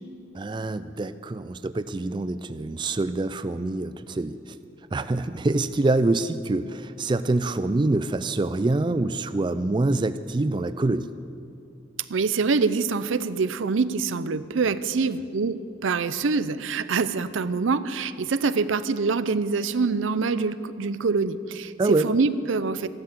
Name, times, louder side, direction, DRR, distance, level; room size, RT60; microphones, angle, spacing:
voice 1, 0.3-4.6 4.9-11.1 21.8-22.1, right 2 dB, 25° right, 12 dB, 0.3 m, -25 dB
voice 2, 12.1-22.9, right 4 dB, 90° right, 14 dB, 0.6 m, -25 dB
13.5 x 11.5 x 7.3 m, 2.4 s
head